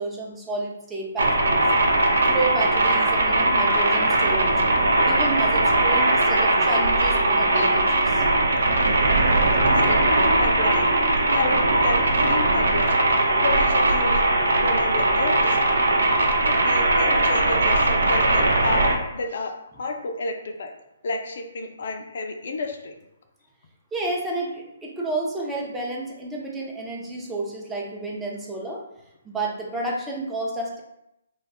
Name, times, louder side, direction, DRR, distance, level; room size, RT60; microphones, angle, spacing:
voice 1, 0.0-1.6 2.3-4.5 5.0-8.2 23.9-28.8 29.2-30.8, right 2 dB, 10° right, -3 dB, 0.5 m, -30 dB
sound 1, 1.2-19.0, right 2 dB, 70° right, 0.4 m, -20 dB
voice 2, 9.9-10.9 11.3-13.0 13.4-14.3 14.6-15.6 16.4-20.7 21.0-22.9, left 3 dB, 60° left, 4 dB, 0.4 m, -31 dB
2.3 x 2.3 x 3.4 m, 0.84 s
figure-of-eight pair, 135°, 0 cm